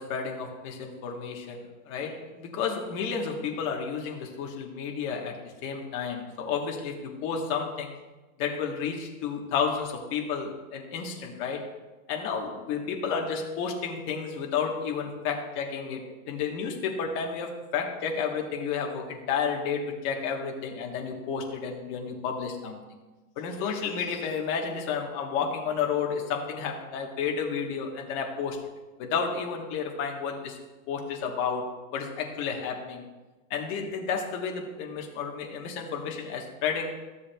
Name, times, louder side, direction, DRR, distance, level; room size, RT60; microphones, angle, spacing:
voice 1, 0.0-8.0 8.4-11.7 12.1-22.8 23.4-28.6 29.0-30.6 30.9-33.0 33.5-37.0, left 6 dB, 30° left, 1 dB, 1.2 m, -31 dB
14.5 x 7.1 x 2.3 m, 1.2 s
supercardioid pair, 165°, 42 cm